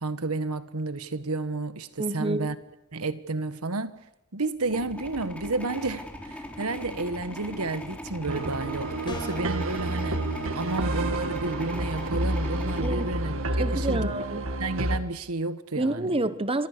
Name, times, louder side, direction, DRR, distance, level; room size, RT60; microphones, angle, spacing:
voice 1, 0.0-2.5 2.9-3.9 4.3-10.2 10.5-14.1 14.6-16.1, right 2 dB, 90° right, 1.5 m, -31 dB
voice 2, 2.0-2.5 12.8-13.1 13.5-14.5 15.8-16.7, right 2 dB, 25° right, 1.1 m, -28 dB
sound 1, 4.6-14.0, left 1 dB, 5° left, 3.8 m, -40 dB
sound 2, 8.3-15.0, right 1 dB, 65° right, 2.1 m, -29 dB
sound 3, 9.1-9.6, equal, 20° left, 5.1 m, -37 dB
27.0 x 24.0 x 6.8 m
head